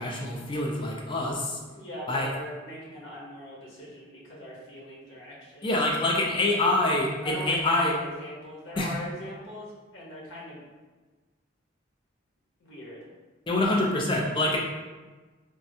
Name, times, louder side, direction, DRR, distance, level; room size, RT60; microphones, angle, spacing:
voice 1, 0.0-1.6 2.1-2.3 5.6-7.9 8.8-8.9 13.5-14.6, left 2 dB, 25° left, -1 dB, 0.4 m, -25 dB
voice 2, 1.7-5.7 6.1-6.6 7.2-10.6 12.6-13.1 13.5-13.9, equal, 85° left, -5 dB, 1.0 m, -41 dB
3.4 x 2.1 x 2.7 m, 1.3 s
head